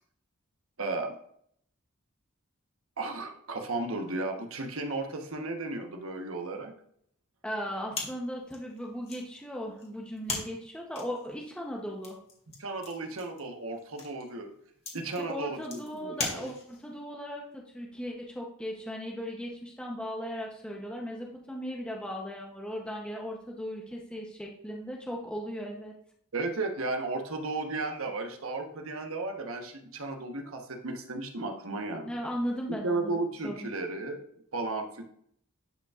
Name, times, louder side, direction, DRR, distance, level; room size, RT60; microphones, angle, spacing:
voice 1, 0.8-1.2 3.0-6.7 12.6-14.5 14.9-16.5 26.3-32.1 32.8-34.2 34.5-35.0, right 2 dB, 70° right, 4 dB, 1.1 m, -34 dB
voice 2, 7.4-12.2 15.3-25.9 32.1-33.7, equal, 5° left, -1 dB, 0.8 m, -37 dB
sound 1, 7.9-17.0, left 3 dB, 30° left, 2.0 m, -41 dB
11.0 x 5.3 x 2.4 m, 0.66 s
head